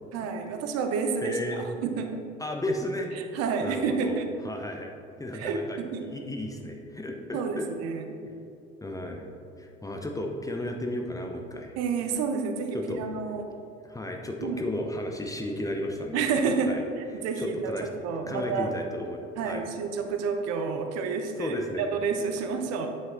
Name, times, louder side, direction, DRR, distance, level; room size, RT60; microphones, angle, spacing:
voice 1, 0.1-2.2 3.3-4.3 5.3-6.1 7.3-8.2 11.8-13.5 14.4-14.6 16.1-17.6 18.0-18.7 19.4-22.9, right 5 dB, 50° right, 5 dB, 0.8 m, -29 dB
voice 2, 1.2-1.6 2.4-3.1 3.6-7.7 8.8-9.3 9.6-11.8 12.7-13.0 13.8-16.3 16.7-16.8 17.1-17.9 18.3-19.7 21.4-21.9, left 1 dB, 10° left, 2 dB, 0.8 m, -34 dB
9.4 x 5.2 x 4.0 m, 2.5 s
figure-of-eight pair, 65°, 33 cm